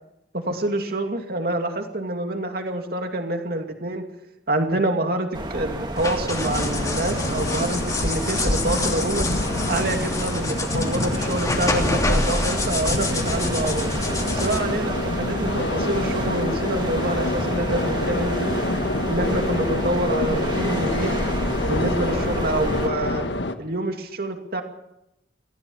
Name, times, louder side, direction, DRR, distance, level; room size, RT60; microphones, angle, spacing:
voice 1, 0.3-4.0 4.5-9.3 9.7-13.9 14.3-18.6 19.1-21.2 21.6-23.2 23.6-24.6, right 1 dB, 60° right, 5 dB, 2.5 m, -26 dB
sound 1, 5.3-22.9, right 1 dB, 25° right, 2.8 m, -30 dB
sound 2, 6.0-14.6, left 2 dB, 20° left, 3.0 m, -28 dB
sound 3, 6.4-23.6, left 2 dB, 80° left, 1.6 m, -27 dB
24.5 x 15.5 x 7.3 m, 0.85 s
head